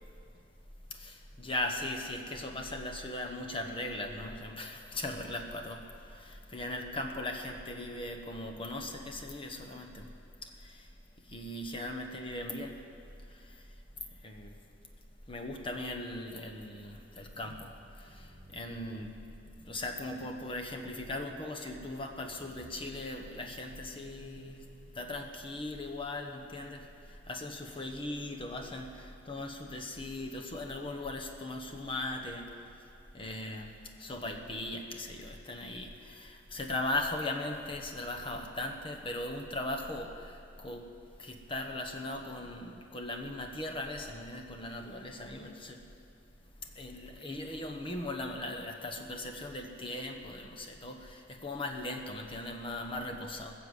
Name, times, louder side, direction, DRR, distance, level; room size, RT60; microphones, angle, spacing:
voice 1, 1.0-5.8 6.1-10.1 10.4-10.8 11.3-12.7 14.2-14.5 15.3-17.7 18.1-18.2 18.5-19.1 19.6-24.6 24.9-26.9 27.3-32.5 33.1-33.7 34.0-40.8 41.2-45.8 46.7-53.5, left 1 dB, 30° left, 2 dB, 1.2 m, -38 dB
voice 2, 17.4-19.1 19.6-20.3 20.8-21.0 22.4-22.9 23.4-25.3, right 1 dB, 60° right, 5 dB, 1.2 m, -56 dB
20.5 x 6.9 x 8.1 m, 2.5 s
head